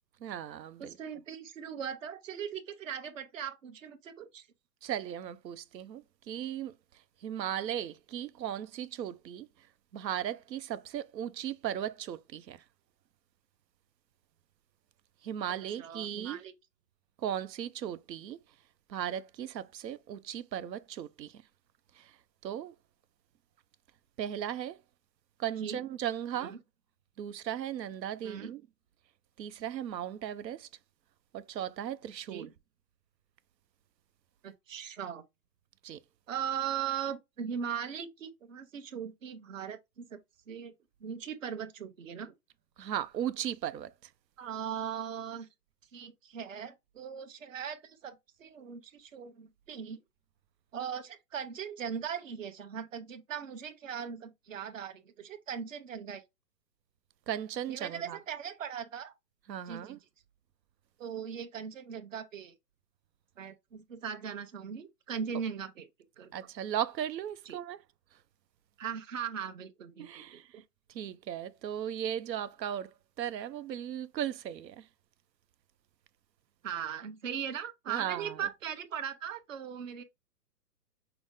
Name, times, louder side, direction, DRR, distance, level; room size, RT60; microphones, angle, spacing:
voice 1, 0.2-1.0 4.8-6.7 7.2-9.5 9.9-12.6 15.2-16.4 17.2-18.4 18.9-21.3 22.0-22.1 22.4-22.7 24.2-24.8 25.4-26.6 27.2-28.6 29.4-30.7 31.3-32.5 35.8-36.0 42.8-43.9 57.3-58.2 59.5-60.0 66.3-67.8 70.0-70.4 70.9-72.9 73.2-74.8 77.9-78.4, right 10 dB, 80° right, 0.7 m, -36 dB
voice 2, 0.8-4.5 15.7-16.5 25.6-25.8 26.4-26.6 28.2-28.5 32.3-32.5 34.4-35.2 36.3-40.2 40.5-40.7 41.0-42.3 44.4-45.5 45.9-50.0 50.7-56.2 57.7-59.1 59.7-60.0 61.0-62.5 63.4-65.9 66.2-66.3 67.5-67.6 68.8-70.6 76.6-80.0, right 8 dB, 50° right, 0.9 m, -39 dB
5.9 x 2.0 x 3.6 m
hypercardioid pair, 170°, 49 cm